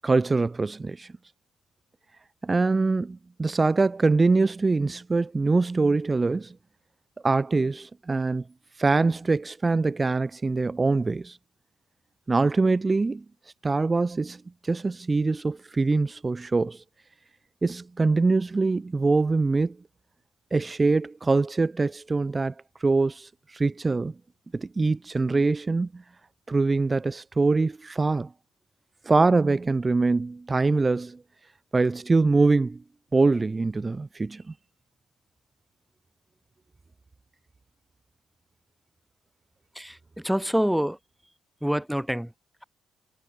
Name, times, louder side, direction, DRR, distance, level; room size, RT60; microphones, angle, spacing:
voice 1, 0.0-1.1 2.4-6.5 7.2-8.4 8.8-11.4 12.3-13.2 13.6-16.8 17.6-19.8 20.5-22.5 22.8-24.1 24.5-26.0 26.5-28.3 29.1-31.2 31.7-32.8 33.1-34.4, right 3 dB, 25° right, 1.1 m, -23 dB
voice 2, 40.2-41.0 41.6-42.3, equal, ahead, 1.2 m, -26 dB
cardioid pair, 90°, 0 cm